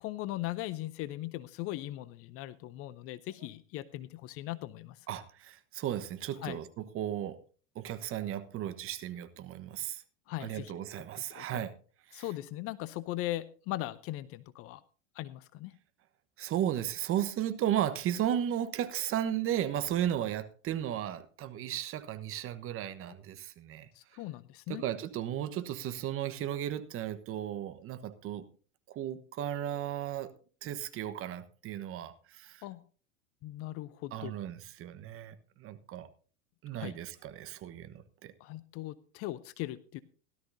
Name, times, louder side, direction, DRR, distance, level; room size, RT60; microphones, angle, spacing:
voice 1, 0.0-5.1 6.4-6.6 10.3-10.7 11.3-11.6 12.1-14.8 15.1-15.7 23.9-24.8 32.6-32.8 33.4-34.4 36.7-37.0 38.4-40.0, left 16 dB, 35° left, 17 dB, 0.6 m, -39 dB
voice 2, 5.1-7.4 7.7-10.0 10.4-11.7 12.1-12.2 16.4-23.9 24.7-28.4 28.9-30.3 30.6-32.6 34.1-36.1 36.6-38.3, right 11 dB, 30° right, 11 dB, 1.2 m, -35 dB
17.0 x 12.5 x 2.7 m, 0.39 s
hypercardioid pair, 100°, 41 cm